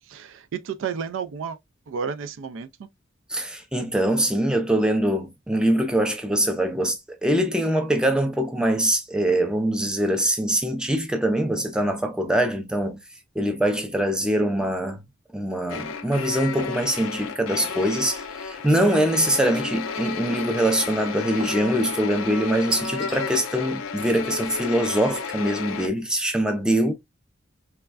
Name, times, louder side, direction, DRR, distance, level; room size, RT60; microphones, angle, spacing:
voice 1, 0.1-1.6 1.9-2.9, right 6 dB, 70° right, 0.3 m, -32 dB
voice 2, 3.3-13.0 13.4-15.0 15.3-26.9, right 1 dB, 5° right, 0.4 m, -23 dB
sound 1, 15.7-25.9, left 5 dB, 80° left, 0.5 m, -32 dB
sound 2, 16.6-16.9 17.3-17.8 19.5-20.1 21.4-21.8 22.7-23.2, right 3 dB, 25° right, 0.8 m, -35 dB
3.3 x 2.1 x 2.3 m
head